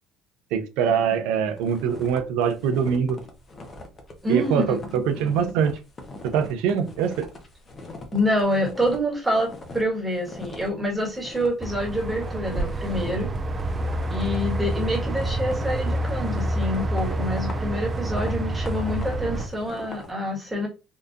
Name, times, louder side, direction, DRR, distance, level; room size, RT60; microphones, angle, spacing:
voice 1, 0.5-3.2 4.3-5.8 6.2-7.3, right 7 dB, 85° right, 0.6 m, -23 dB
sound 1, 1.6-9.0 9.3-9.9 10.2-20.1, left 2 dB, 30° left, 0.8 m, -41 dB
voice 2, 4.2-5.5 8.1-13.3 14.1-20.7, equal, 5° right, 1.5 m, -27 dB
sound 2, 11.6-19.5, right 1 dB, 25° right, 0.4 m, -28 dB
3.8 x 2.5 x 2.4 m
cardioid pair, 130°, 0 cm